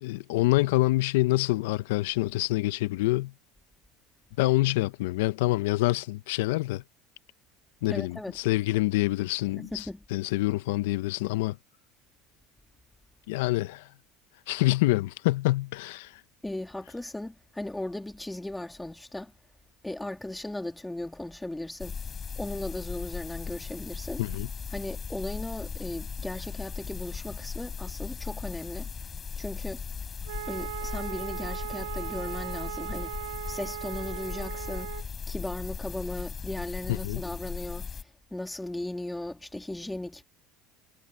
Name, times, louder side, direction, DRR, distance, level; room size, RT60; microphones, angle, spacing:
voice 1, 0.0-3.3 4.4-6.8 7.8-9.9 10.1-11.6 13.3-13.9 14.5-16.2 24.2-24.5 36.9-37.2, left 18 dB, 75° left, 1.0 m, -26 dB
voice 2, 7.9-8.4 9.6-10.0 16.4-19.3 19.8-22.0 22.4-24.2 24.7-28.9 29.4-29.8 30.5-33.2 33.5-35.0 35.3-38.0 38.3-40.2, left 1 dB, 10° left, 2.8 m, -37 dB
sound 1, 21.8-38.0, left 6 dB, 30° left, 4.5 m, -37 dB
Wind instrument woodwind instrument, 30.2-35.1, right 15 dB, 80° right, 0.7 m, -38 dB
hypercardioid pair, 80°, 0 cm